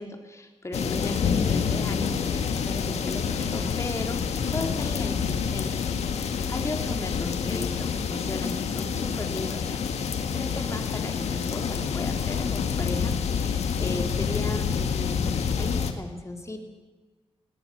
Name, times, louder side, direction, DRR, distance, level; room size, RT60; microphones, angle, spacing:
voice 1, 0.0-5.8 6.0-16.6, left 2 dB, 25° left, 4 dB, 4.1 m, -36 dB
sound 1, 0.7-15.9, left 6 dB, 85° left, 1.9 m, -27 dB
21.0 x 18.5 x 8.1 m, 1.3 s
cardioid pair, 70°, 11 cm